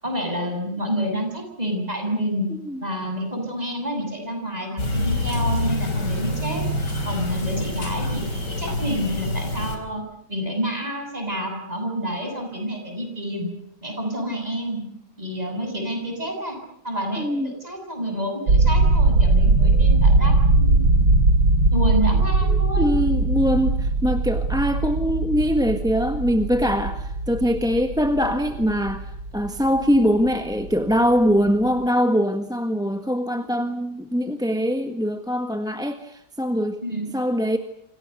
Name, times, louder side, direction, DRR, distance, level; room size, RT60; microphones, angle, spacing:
voice 1, 0.0-2.5 2.8-6.6 7.1-10.0 10.3-13.5 13.8-14.8 15.2-16.6 16.8-20.8 21.7-22.9 33.5-33.6 36.8-37.1, equal, 20° right, 4 dB, 7.8 m, -28 dB
voice 2, 2.5-2.8 17.2-17.5 22.5-36.8 37.1-37.6, equal, ahead, 8 dB, 1.3 m, -23 dB
sound 1, 4.8-9.8, left 1 dB, 70° left, 5.1 m, -26 dB
space rumble, 18.5-30.3 30.6-31.0 31.3-31.5, right 2 dB, 90° right, 3.5 m, -20 dB
28.5 x 27.0 x 6.9 m, 0.73 s
omnidirectional pair, 1.9 m